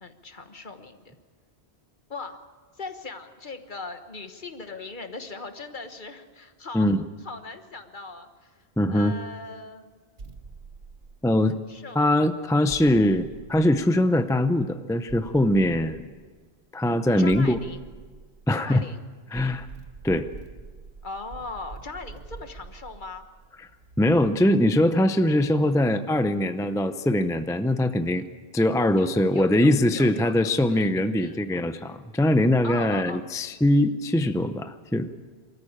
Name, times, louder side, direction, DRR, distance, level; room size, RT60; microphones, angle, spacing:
voice 1, 0.0-1.2 2.1-2.4 2.8-6.9 7.2-8.5 8.9-10.0 11.4-12.0 17.2-17.8 18.5-19.0 21.0-23.2 28.9-30.9 31.2-31.4 32.6-33.2, left 3 dB, 45° left, 7 dB, 1.4 m, -39 dB
voice 2, 8.8-9.2 11.2-11.6 11.9-16.0 16.7-17.6 18.5-18.8 19.3-19.7 20.0-20.3 24.0-28.2 28.5-35.1, left 1 dB, 5° left, 10 dB, 0.5 m, -22 dB
sound 1, 10.2-11.7 12.7-14.3 15.1-16.4 17.3-18.9 19.3-24.6, right 4 dB, 55° right, 1.4 m, -45 dB
25.0 x 14.0 x 8.7 m, 1.5 s
omnidirectional pair, 1.1 m